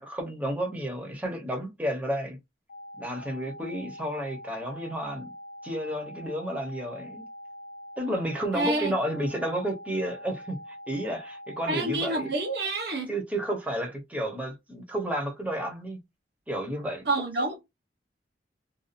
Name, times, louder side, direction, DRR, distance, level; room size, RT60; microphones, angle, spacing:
voice 1, 0.0-2.4 3.0-5.3 5.6-7.2 8.0-10.6 10.9-12.3 13.1-16.0 16.5-17.0, right 1 dB, 10° right, 0.8 m, -31 dB
sound 1, 2.7-12.7, equal, 90° left, 0.8 m, -44 dB
voice 2, 8.5-8.9 11.7-13.1 17.0-17.6, right 2 dB, 65° right, 1.0 m, -28 dB
2.6 x 2.3 x 2.5 m
head